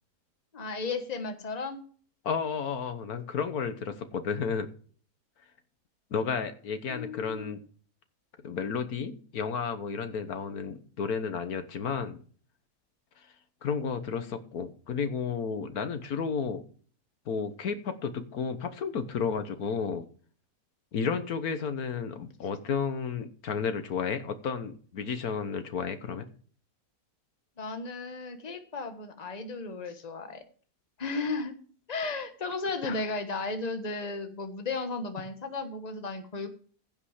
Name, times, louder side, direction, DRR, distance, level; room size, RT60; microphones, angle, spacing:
voice 1, 0.5-1.8 6.9-7.6 27.6-30.4 31.0-31.5 31.9-36.5, left 3 dB, 30° left, 7 dB, 1.4 m, -34 dB
voice 2, 2.2-4.7 6.1-7.6 8.4-12.2 13.6-16.6 17.3-20.0 20.9-26.2 32.8-33.0, left 6 dB, 75° left, 9 dB, 1.6 m, -32 dB
16.0 x 5.4 x 4.9 m, 0.43 s
omnidirectional pair, 1.6 m